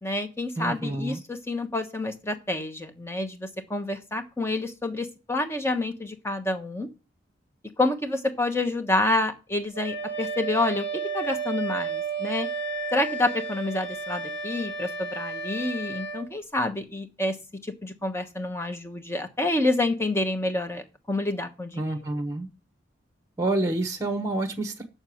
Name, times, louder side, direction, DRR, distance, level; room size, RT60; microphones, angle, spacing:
voice 1, 0.0-6.9 7.8-10.9 11.1-12.5 12.9-17.4 17.6-21.9, left 2 dB, 15° left, 7 dB, 1.1 m, -28 dB
voice 2, 0.6-1.2 21.8-22.5 23.4-24.8, right 2 dB, 15° right, 7 dB, 1.1 m, -28 dB
Wind instrument woodwind instrument, 9.7-16.3, right 4 dB, 30° left, 1.7 m, -32 dB
6.8 x 6.8 x 7.7 m, 0.32 s
head